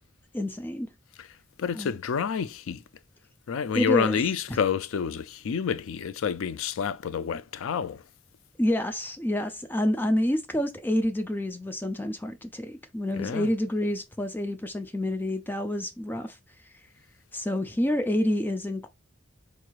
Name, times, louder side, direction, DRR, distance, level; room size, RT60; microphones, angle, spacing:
voice 1, 0.3-0.9 1.7-2.0 3.7-4.2 4.5-4.6 8.6-16.4 16.6-16.7 17.3-18.9, left 1 dB, 10° left, 0.3 m, -28 dB
voice 2, 1.6-2.8 3.5-8.0 13.2-13.5, left 7 dB, 85° left, 0.4 m, -28 dB
4.5 x 3.1 x 2.3 m
head